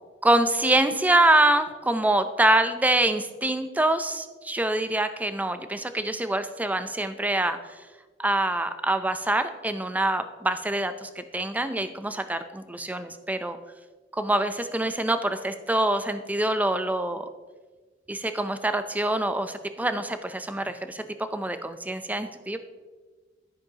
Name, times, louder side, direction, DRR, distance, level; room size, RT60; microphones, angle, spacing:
voice 1, 0.2-7.6 8.2-13.6 14.1-17.2 18.1-22.6, right 1 dB, 10° right, 10 dB, 0.5 m, -25 dB
10.5 x 10.0 x 2.9 m, 1.4 s
head